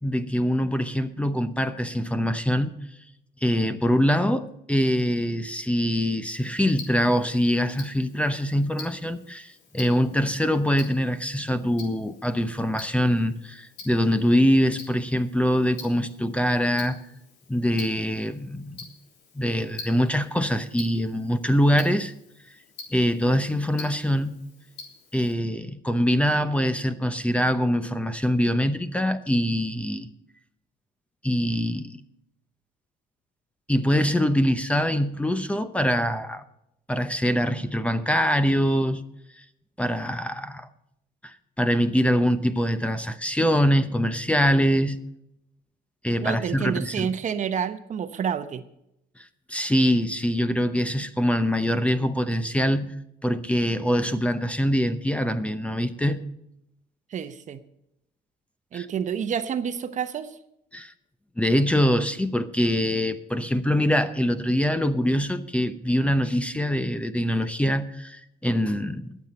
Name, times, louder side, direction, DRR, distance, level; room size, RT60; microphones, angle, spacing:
voice 1, 0.0-2.7 3.4-17.0 17.5-18.8 19.3-22.1 22.9-24.4 25.1-30.1 31.2-32.0 33.7-36.4 36.9-39.0 39.4-39.5 39.8-40.7 41.2-45.0 46.0-47.1 49.2-52.9 53.2-56.2 58.7-58.9 60.7-60.9 61.4-69.2, equal, 5° left, 0.8 m, -24 dB
Tick-tock, 6.3-25.3, left 4 dB, 85° left, 3.4 m, -46 dB
voice 2, 46.2-48.6 57.1-57.6 58.7-60.4, right 8 dB, 45° right, 0.9 m, -29 dB
21.5 x 7.5 x 4.2 m
cardioid pair, 110°, 17 cm